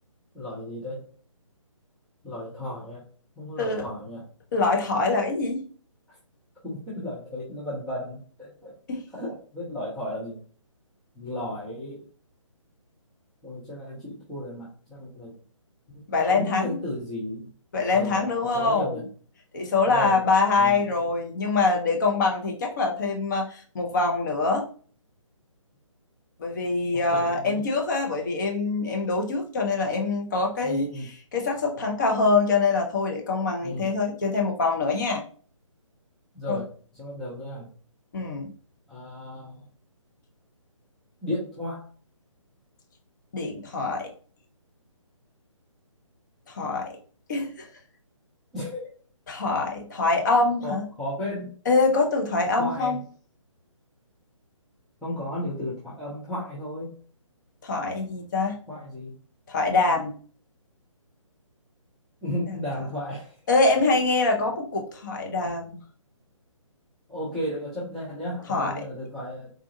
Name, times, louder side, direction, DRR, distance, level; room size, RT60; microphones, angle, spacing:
voice 1, 0.3-1.0 2.2-3.0 3.4-4.2 6.6-8.7 9.1-10.4 11.2-12.0 13.4-15.3 15.9-17.5 17.9-19.0 19.8-20.2 20.6-20.8 26.9-27.7 30.6-31.1 33.6-33.9 36.3-36.7 37.0-37.7 38.9-39.6 41.2-41.8 48.5-48.9 50.6-51.5 52.6-53.0 55.0-56.9 58.7-59.2 62.2-63.3 67.1-69.5, left 1 dB, ahead, -11 dB, 0.4 m, -34 dB
voice 2, 4.5-5.6 8.9-9.0 16.1-16.8 17.7-19.0 19.5-24.7 26.4-35.2 36.5-36.6 38.1-38.5 43.3-44.1 46.5-46.9 47.3-47.7 49.3-50.9 51.7-53.0 57.6-58.6 59.5-60.1 63.5-65.8 68.5-68.7, left 3 dB, 35° left, 1 dB, 0.8 m, -24 dB
3.7 x 2.4 x 2.7 m, 0.42 s
figure-of-eight pair, 145°, 17 cm